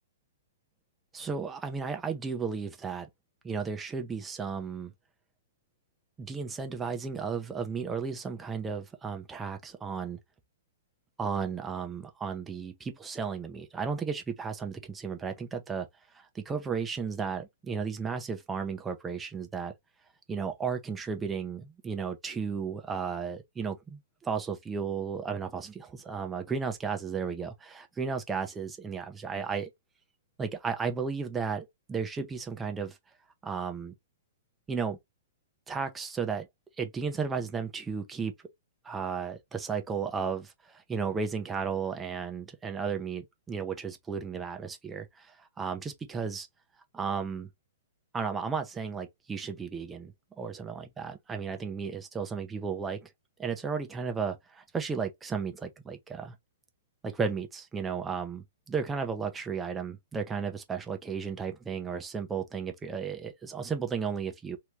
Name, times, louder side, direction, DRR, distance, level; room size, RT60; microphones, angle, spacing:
voice 1, 1.1-3.1 3.4-4.9 6.2-10.2 11.2-15.9 16.1-19.7 20.3-29.7 30.4-33.0 33.4-33.9 34.7-35.0 35.7-36.5 36.8-38.3 38.8-46.5 46.9-47.5 48.1-53.1 53.4-56.3 57.0-64.6, right 5 dB, 15° right, 0.6 m, -34 dB
2.9 x 2.2 x 3.2 m
hypercardioid pair, 120°, 0 cm